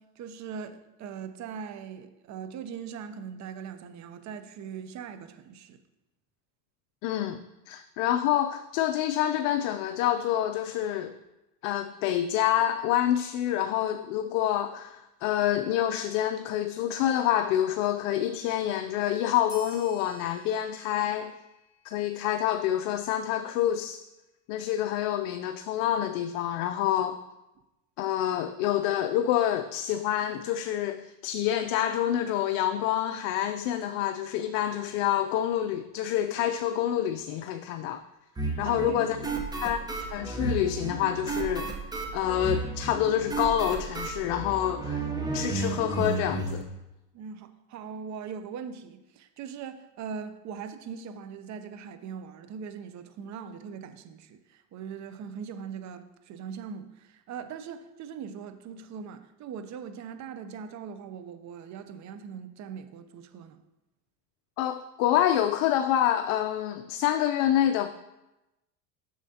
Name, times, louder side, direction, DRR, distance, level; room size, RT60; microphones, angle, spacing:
voice 1, 0.0-5.8 38.6-39.9 47.1-63.6, right 7 dB, 40° right, 0.6 m, -41 dB
voice 2, 7.0-7.4 7.7-11.1 11.6-21.3 21.8-24.0 24.5-27.2 28.0-38.0 38.6-39.2 39.6-41.7 42.1-45.1 45.3-46.6 64.6-67.9, left 11 dB, 70° left, 0.6 m, -27 dB
sound 1, 19.5-22.5, left 2 dB, 30° left, 2.0 m, -51 dB
sound 2, 38.4-46.6, right 3 dB, 10° right, 0.9 m, -33 dB
7.2 x 6.4 x 2.8 m
supercardioid pair, 110°, 45 cm